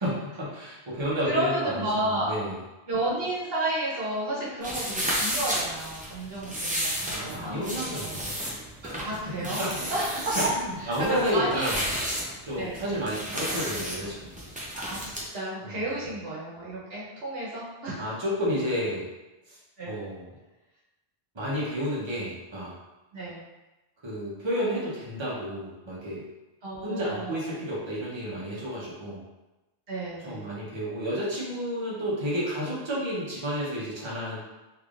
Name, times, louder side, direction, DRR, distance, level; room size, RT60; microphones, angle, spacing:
voice 1, 0.0-2.5 7.0-8.3 8.8-9.8 10.3-10.4 10.9-11.8 12.5-14.3 15.6-15.8 18.0-19.1 19.5-19.6 19.9-20.3 21.3-22.7 24.0-26.2 26.8-29.2 30.2-34.4, equal, 30° right, -7 dB, 0.9 m, -31 dB
voice 2, 1.2-2.3 2.9-8.2 9.0-9.6 9.9-10.4 10.8-11.7 12.6-12.8 14.7-15.0 15.3-18.2 19.8-20.0 23.1-23.4 26.6-27.5 29.9-30.5, right 1 dB, 70° right, -6 dB, 1.1 m, -31 dB
sound 1, 4.6-15.2, equal, 10° right, 0.5 m, -32 dB
3.4 x 3.3 x 2.5 m, 1.1 s
omnidirectional pair, 1.0 m